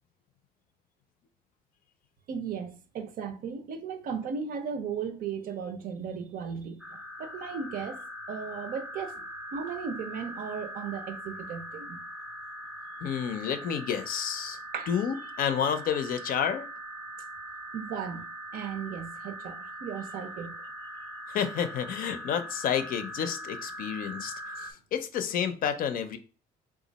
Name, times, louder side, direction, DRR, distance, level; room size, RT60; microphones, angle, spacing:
voice 1, 2.3-8.0 8.3-9.2 9.5-12.0 14.7-14.9 17.7-18.3 18.5-20.6, right 6 dB, 60° right, 0.6 m, -36 dB
sound 1, 6.8-24.7, equal, ahead, 0.5 m, -41 dB
voice 2, 13.0-14.6 14.9-16.7 21.3-26.2, left 8 dB, 55° left, 0.5 m, -30 dB
3.0 x 2.4 x 3.9 m
cardioid pair, 110°, 17 cm